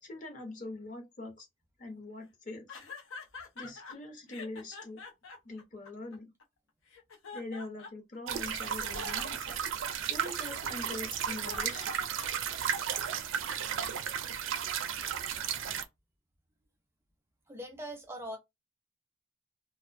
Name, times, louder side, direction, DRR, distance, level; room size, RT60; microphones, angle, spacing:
voice 1, 0.0-1.5 1.8-2.8 3.5-5.0 5.4-6.3 7.3-9.5 10.1-12.0, left 2 dB, 40° left, 0.6 m, -43 dB
sound 1, 2.7-3.9 4.3-6.4 6.9-8.2 8.5-12.8, left 5 dB, 85° left, 0.6 m, -46 dB
sound 2, 8.3-15.8, right 8 dB, 85° right, 0.4 m, -34 dB
voice 2, 17.5-18.4, equal, 15° right, 0.4 m, -41 dB
2.4 x 2.1 x 2.5 m
head